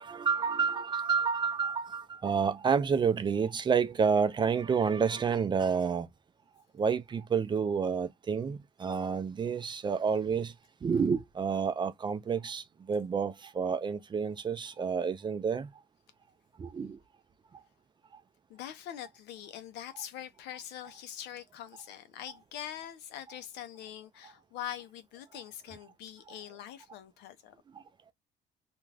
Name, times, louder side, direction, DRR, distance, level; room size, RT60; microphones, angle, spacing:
voice 1, 0.0-6.1 6.8-10.5 10.8-15.7 16.6-17.0, right 6 dB, 25° right, 0.4 m, -29 dB
voice 2, 18.5-27.5, left 11 dB, 85° left, 0.6 m, -43 dB
2.5 x 2.3 x 3.2 m
cardioid pair, 110°, 17 cm